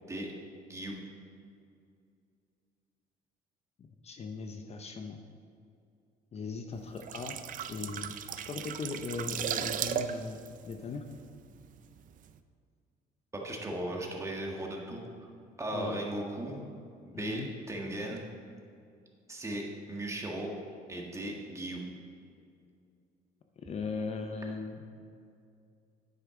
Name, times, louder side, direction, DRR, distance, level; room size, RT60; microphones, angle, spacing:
voice 1, 0.0-0.3 0.7-0.9 13.3-15.3 15.6-16.6 17.0-18.2 19.3-20.5 20.9-21.8, right 1 dB, 15° right, -1 dB, 1.6 m, -37 dB
voice 2, 3.8-5.2 6.3-7.4 7.7-8.1 8.5-10.4 10.6-11.0 15.7-16.0 17.1-17.5 23.6-24.9, left 4 dB, 40° left, 5 dB, 0.7 m, -38 dB
sound 1, 6.8-11.7 12.0-12.2, right 9 dB, 50° right, 0.5 m, -36 dB
9.5 x 9.0 x 3.8 m, 2.5 s
cardioid pair, 110°, 17 cm